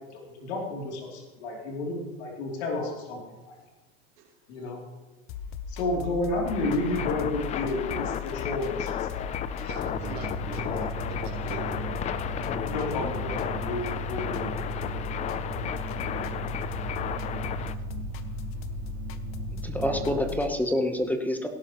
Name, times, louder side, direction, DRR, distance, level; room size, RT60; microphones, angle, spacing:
voice 1, 0.1-3.2 4.5-4.8 5.7-9.3 10.4-10.5 12.6-15.0 16.1-16.6 19.7-20.4, left 2 dB, 85° left, -1 dB, 3.0 m, -32 dB
voice 2, 4.2-4.7 9.6-11.8 13.8-14.0, right 5 dB, 75° right, -2 dB, 3.4 m, -43 dB
sound 1, 5.3-20.5, left 9 dB, 40° left, 0.8 m, -38 dB
sound 2, 6.4-17.7, left 9 dB, 20° left, 0.4 m, -34 dB
sound 3, 9.9-20.2, right 7 dB, 55° right, 2.6 m, -37 dB
voice 3, 19.5-21.5, left 1 dB, 5° left, 6 dB, 0.8 m, -27 dB
17.5 x 11.0 x 3.0 m, 1.2 s
supercardioid pair, 135°, 32 cm